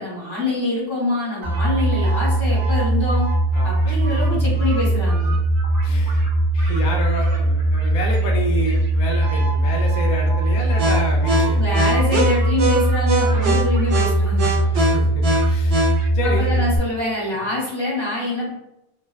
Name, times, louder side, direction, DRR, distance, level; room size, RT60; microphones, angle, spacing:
voice 1, 0.0-3.3 3.6-5.3 11.6-14.6 16.2-18.5, left 2 dB, 25° right, -10 dB, 0.8 m, -25 dB
sound 1, 1.4-16.8, right 1 dB, 85° right, 0.9 m, -19 dB
voice 2, 3.5-4.5 5.8-6.3 6.5-11.6 13.2-13.6 14.5-15.8 16.1-16.6, left 1 dB, 55° left, 0 dB, 0.5 m, -29 dB
2.6 x 2.1 x 2.2 m, 0.86 s
omnidirectional pair, 1.1 m